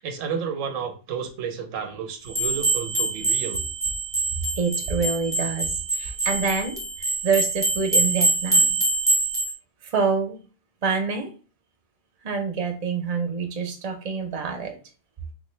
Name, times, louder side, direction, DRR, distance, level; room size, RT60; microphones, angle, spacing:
voice 1, 0.0-3.6, right 6 dB, 80° right, 6 dB, 1.0 m, -31 dB
sound 1, 2.3-9.5, right 2 dB, 5° right, 0.8 m, -24 dB
voice 2, 4.6-8.8 9.8-10.4 10.8-11.3 12.2-14.8, right 5 dB, 40° right, 3 dB, 0.6 m, -26 dB
3.7 x 2.5 x 3.2 m, 0.36 s
omnidirectional pair, 1.3 m